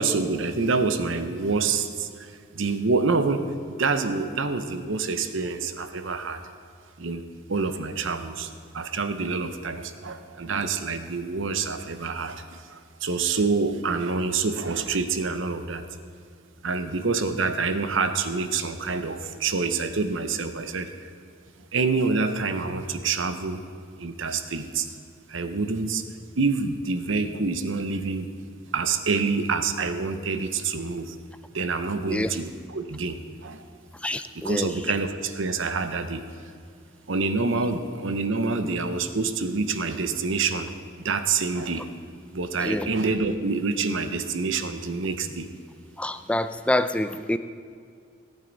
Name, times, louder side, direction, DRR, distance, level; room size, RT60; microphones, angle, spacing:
voice 1, 0.0-6.4 7.0-7.2 7.5-15.9 16.6-21.1 21.7-23.6 24.0-24.9 25.3-26.0 26.4-28.3 28.7-31.2 31.5-33.6 34.3-36.2 37.1-40.7 41.0-41.9 42.3-45.5, right 4 dB, 65° right, 8 dB, 0.8 m, -27 dB
voice 2, 34.0-34.7 42.6-42.9 46.0-47.4, left 1 dB, 5° left, 10 dB, 0.3 m, -26 dB
17.5 x 9.1 x 4.0 m, 2.2 s
head